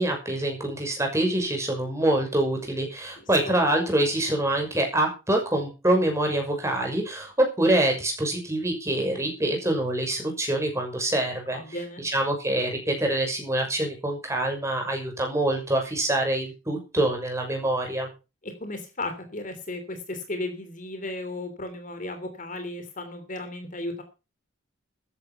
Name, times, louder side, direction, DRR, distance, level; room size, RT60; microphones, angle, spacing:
voice 1, 0.0-11.6 12.0-18.1, right 1 dB, 15° right, 3 dB, 6.4 m, -25 dB
voice 2, 3.2-3.5 11.5-12.0 18.4-24.0, left 2 dB, 40° left, 7 dB, 3.0 m, -35 dB
14.0 x 11.5 x 5.8 m, 0.30 s
head